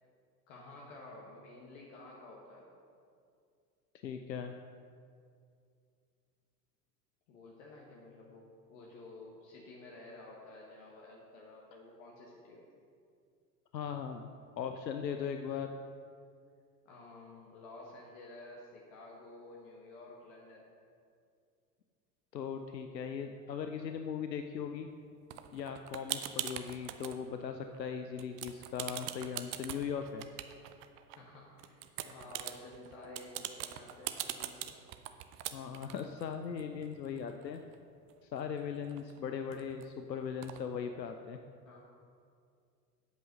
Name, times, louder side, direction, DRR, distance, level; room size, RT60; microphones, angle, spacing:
voice 1, 0.5-2.8 7.3-12.8 16.8-20.7 31.2-34.7 36.7-36.9 41.6-41.8, left 2 dB, 50° left, -2 dB, 1.5 m, -52 dB
voice 2, 4.0-4.5 13.7-14.3 14.6-15.7 22.3-24.9 25.5-30.2 35.5-37.6 38.2-41.4, left 7 dB, 85° left, 6 dB, 0.6 m, -39 dB
sound 1, 25.3-27.2 27.6-27.9 28.2-31.2 31.6-37.8 38.1-38.2 38.4-39.8 40.4-40.6, right 13 dB, 25° right, 0.4 m, -42 dB
8.1 x 7.8 x 5.3 m, 2.3 s
figure-of-eight pair, 80°, 49 cm